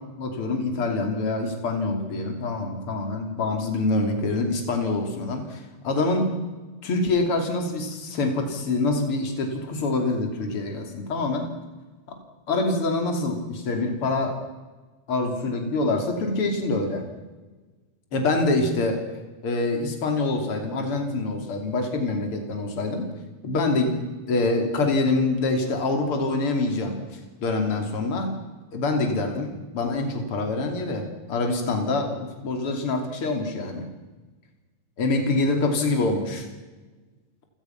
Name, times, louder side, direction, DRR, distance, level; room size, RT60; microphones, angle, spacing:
voice 1, 0.2-6.3 6.8-11.5 12.1-12.2 12.5-14.4 15.1-17.0 18.1-19.0 19.4-23.1 23.4-24.0 24.3-28.4 28.7-33.9 35.0-36.5, left 2 dB, 50° left, 4 dB, 3.7 m, -25 dB
29.0 x 17.0 x 5.9 m, 1.3 s
omnidirectional pair, 3.3 m